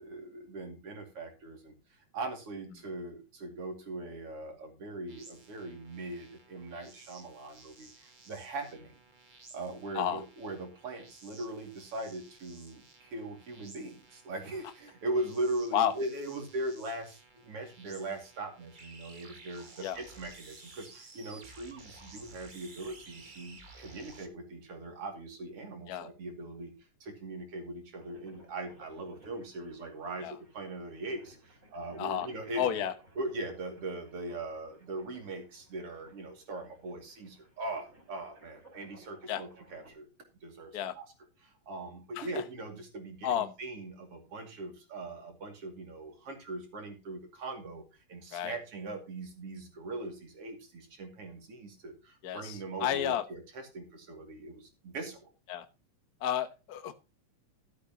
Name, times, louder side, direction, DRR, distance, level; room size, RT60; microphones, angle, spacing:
voice 1, 0.0-1.7 2.1-9.0 9.5-26.7 27.0-32.9 33.2-40.1 40.4-41.1 41.4-47.8 48.1-55.3, right 2 dB, 50° right, 4 dB, 3.3 m, -40 dB
sound 1, 5.1-24.3, right 3 dB, 80° right, 0.4 m, -55 dB
sound 2, 27.9-39.9, right 2 dB, 20° right, 3.5 m, -60 dB
voice 2, 32.0-32.3 32.6-32.9 39.3-39.4 40.7-41.0 42.2-42.3 43.2-43.5 48.3-48.6 52.2-53.2 55.5-55.7 56.2-56.9, left 10 dB, 90° left, 9 dB, 0.8 m, -31 dB
12.0 x 11.0 x 2.9 m, 0.29 s
omnidirectional pair, 3.4 m